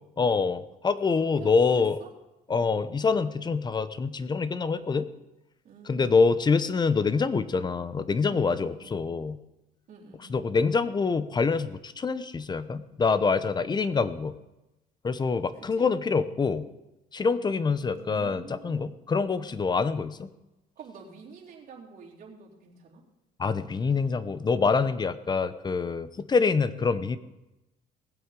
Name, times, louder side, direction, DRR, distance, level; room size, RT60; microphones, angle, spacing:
voice 1, 0.2-2.0 2.5-5.1 5.9-9.4 10.3-14.3 15.0-16.7 17.1-20.3 23.4-27.2, left 4 dB, 25° left, 14 dB, 0.8 m, -25 dB
voice 2, 1.3-2.1 2.5-2.7 5.6-6.4 8.3-8.9 9.9-10.5 15.6-16.0 17.7-19.0 20.8-23.0, right 5 dB, 50° right, -4 dB, 4.0 m, -48 dB
19.5 x 7.9 x 5.3 m, 0.98 s
cardioid pair, 110°, 17 cm